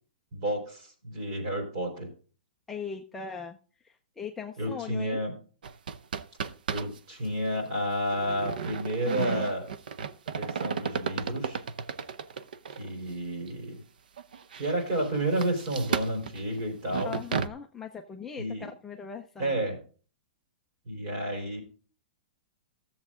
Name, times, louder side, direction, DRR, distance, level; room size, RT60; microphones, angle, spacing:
voice 1, 0.3-2.1 4.6-5.4 6.4-9.7 10.3-11.6 12.8-13.8 14.5-17.2 18.4-18.7 19.4-19.8 20.9-21.6, right 1 dB, 35° right, 2 dB, 3.7 m, -31 dB
voice 2, 2.7-3.6 4.2-5.2 17.0-19.6, left 6 dB, 5° left, 1 dB, 0.5 m, -39 dB
sound 1, 5.6-7.0 7.2-7.3 8.1-12.9 13.5-13.6 14.2-17.5, right 6 dB, 80° right, 0.7 m, -34 dB
13.5 x 7.3 x 3.7 m, 0.40 s
hypercardioid pair, 170°, 5 cm